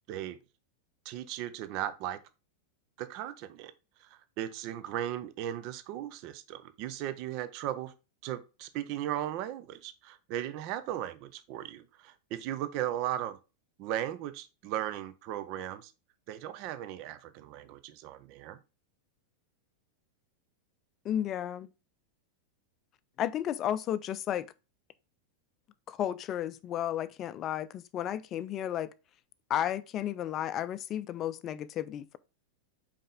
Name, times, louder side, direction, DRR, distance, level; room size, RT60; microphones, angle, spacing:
voice 1, 0.1-0.4 1.0-2.2 3.0-3.7 4.0-7.9 8.2-13.4 13.8-15.9 16.3-18.6, right 12 dB, 45° right, 0.6 m, -37 dB
voice 2, 21.0-21.7 23.2-24.5 25.9-28.9 29.5-32.2, left 11 dB, 30° left, 0.5 m, -33 dB
5.5 x 5.0 x 3.5 m
figure-of-eight pair, 90°, 0 cm